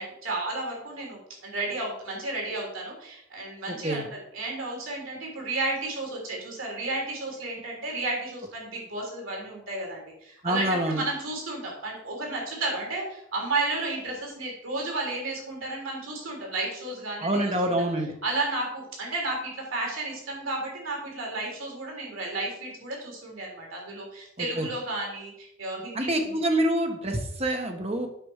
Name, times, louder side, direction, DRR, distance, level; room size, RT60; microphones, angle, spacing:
voice 1, 0.0-17.7 18.2-26.4, right 2 dB, 75° right, 0 dB, 3.9 m, -32 dB
voice 2, 3.7-4.0 10.4-11.0 17.2-18.1 24.4-24.7 25.9-28.1, right 1 dB, 30° right, 3 dB, 1.3 m, -26 dB
8.3 x 5.1 x 6.5 m, 0.74 s
head